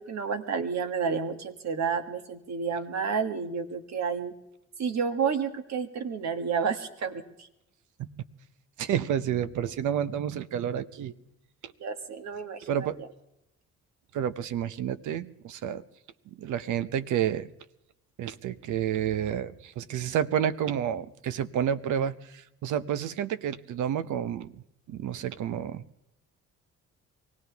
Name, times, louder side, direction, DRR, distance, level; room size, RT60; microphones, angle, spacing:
voice 1, 0.0-4.3 4.8-7.2 11.8-12.9, right 6 dB, 65° right, 7 dB, 1.8 m, -30 dB
voice 2, 8.8-11.1 12.7-13.0 14.1-15.8 16.4-17.5 18.2-25.8, right 9 dB, 80° right, 14 dB, 0.9 m, -30 dB
24.5 x 17.0 x 3.5 m, 0.84 s
cardioid pair, 90°, 30 cm